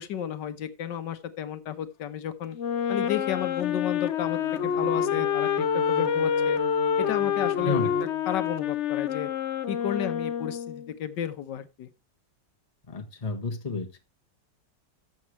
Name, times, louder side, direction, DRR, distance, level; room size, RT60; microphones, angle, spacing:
voice 1, 0.0-2.6 2.9-6.6 7.0-7.9 8.3-9.3 9.7-11.9, left 9 dB, 80° left, 1.6 m, -33 dB
Wind instrument woodwind instrument, 2.5-10.9, left 8 dB, 60° left, 0.7 m, -27 dB
Bowed string instrument, 4.2-8.8, right 3 dB, 55° right, 1.3 m, -39 dB
voice 2, 12.9-14.0, left 3 dB, 25° left, 1.3 m, -31 dB
13.0 x 7.5 x 3.1 m
omnidirectional pair, 1.9 m